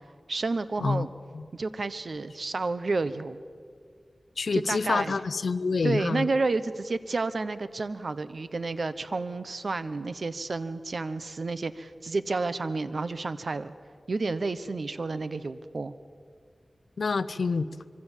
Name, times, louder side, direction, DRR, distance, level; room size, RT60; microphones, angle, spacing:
voice 1, 0.3-1.1 1.5-3.4 4.5-5.1 5.8-13.7 14.1-15.9, right 3 dB, 65° right, 13 dB, 0.9 m, -30 dB
voice 2, 4.4-6.3 17.0-17.7, left 4 dB, 85° left, 15 dB, 0.7 m, -27 dB
25.0 x 24.0 x 7.4 m, 2.1 s
wide cardioid pair, 95°, 0 cm